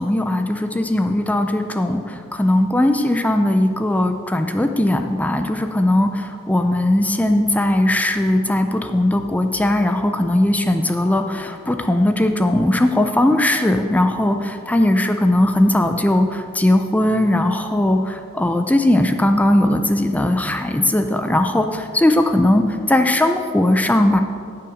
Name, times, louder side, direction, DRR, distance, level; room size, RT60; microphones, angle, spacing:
voice 1, 0.0-24.2, left 1 dB, 5° left, 6 dB, 0.4 m, -18 dB
16.0 x 5.8 x 4.9 m, 2.5 s
head